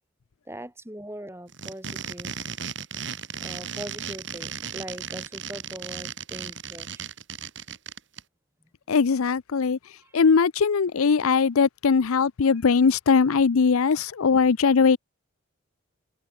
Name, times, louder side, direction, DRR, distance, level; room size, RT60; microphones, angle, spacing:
voice 1, 0.5-2.4 3.4-7.1 10.0-10.3, right 1 dB, 10° right, 7.0 m, -41 dB
sound 1, 1.5-8.2, right 7 dB, 55° right, 3.5 m, -36 dB
voice 2, 8.9-9.8 10.1-15.0, left 5 dB, 80° left, 0.5 m, -20 dB
head